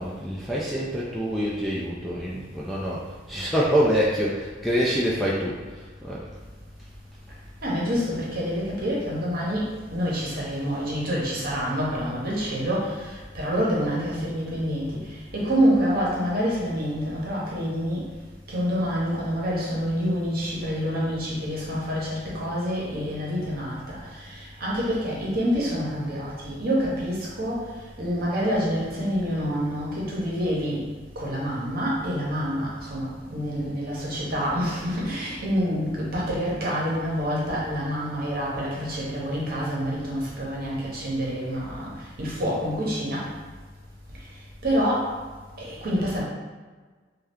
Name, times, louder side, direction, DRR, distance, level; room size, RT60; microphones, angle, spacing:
voice 1, 0.0-6.2, equal, ahead, -7 dB, 0.3 m, -26 dB
voice 2, 7.6-15.0 15.3-18.0 18.5-24.0 24.2-27.7 28.0-30.8 31.2-41.9 42.2-43.3 44.6-45.1 45.6-46.2, equal, 55° right, -5 dB, 0.8 m, -27 dB
2.7 x 2.3 x 3.4 m, 1.4 s
head